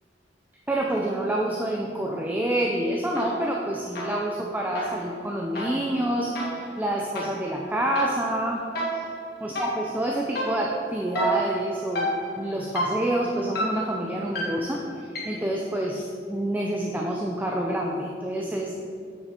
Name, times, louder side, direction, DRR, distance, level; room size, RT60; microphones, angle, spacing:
voice 1, 0.7-8.6 8.9-9.0 9.4-18.8, right 1 dB, 10° right, -1 dB, 0.6 m, -28 dB
sound 1, 3.2-3.6 4.0-15.6, right 1 dB, 60° left, 2.1 m, -32 dB
9.6 x 6.0 x 4.3 m, 2.3 s
head